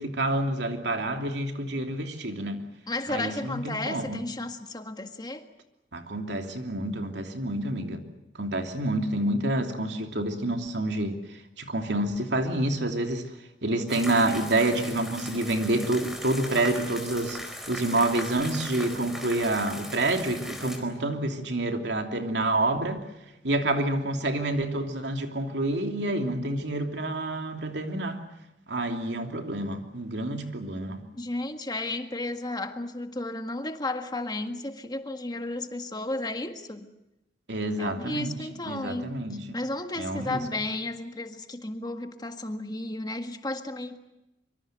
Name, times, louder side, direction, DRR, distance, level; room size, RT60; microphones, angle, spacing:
voice 1, 0.0-2.7 3.1-4.2 5.9-8.1 8.3-13.3 13.6-17.4 17.7-23.0 23.4-28.2 28.7-31.0 37.5-38.4 38.7-39.6 40.0-40.4, right 1 dB, 85° right, 2.9 m, -28 dB
voice 2, 2.9-5.4 31.1-36.9 37.8-39.2 39.5-44.0, left 2 dB, 25° left, 1.7 m, -33 dB
sound 1, 13.9-20.8, equal, ahead, 4.3 m, -39 dB
24.5 x 24.5 x 7.8 m
head